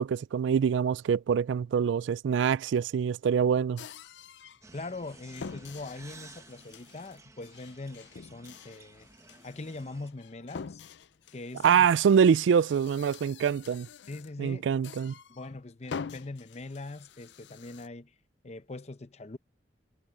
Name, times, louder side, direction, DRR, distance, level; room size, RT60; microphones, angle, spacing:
voice 1, 0.0-3.8 11.6-13.9 14.4-15.1, right 7 dB, 90° right, 0.3 m, -25 dB
sound 1, 3.8-4.6 5.0-14.4 14.8-15.5 15.8-17.9, left 6 dB, 75° left, 0.5 m, -46 dB
sound 2, 4.6-10.1, right 3 dB, 15° right, 1.0 m, -54 dB
voice 2, 4.7-9.1 9.4-10.8 11.3-11.9 14.1-14.6 15.3-18.1 18.4-19.4, left 2 dB, 40° left, 0.7 m, -42 dB
head